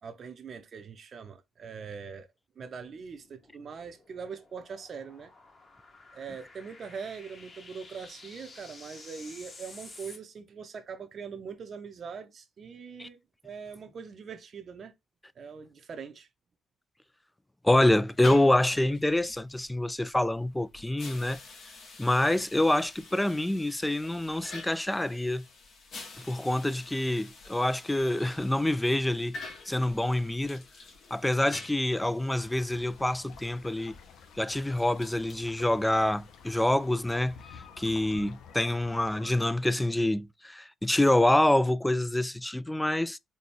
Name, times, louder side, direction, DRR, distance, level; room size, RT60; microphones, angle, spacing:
voice 1, 0.0-2.3 2.6-5.3 6.1-14.9 15.4-16.3, right 6 dB, 50° right, 0.6 m, -42 dB
sound 1, 2.8-10.2, left 3 dB, 40° left, 1.3 m, -52 dB
voice 2, 17.6-21.4 22.0-25.4 26.3-29.4 29.7-30.6 31.1-34.0 34.4-37.4 37.8-43.2, left 1 dB, 10° left, 0.3 m, -26 dB
sound 2, 18.1-37.7, left 3 dB, 65° left, 1.2 m, -49 dB
sound 3, 32.3-39.3, left 7 dB, 85° left, 0.5 m, -51 dB
4.1 x 2.2 x 3.5 m
cardioid pair, 90°, 0 cm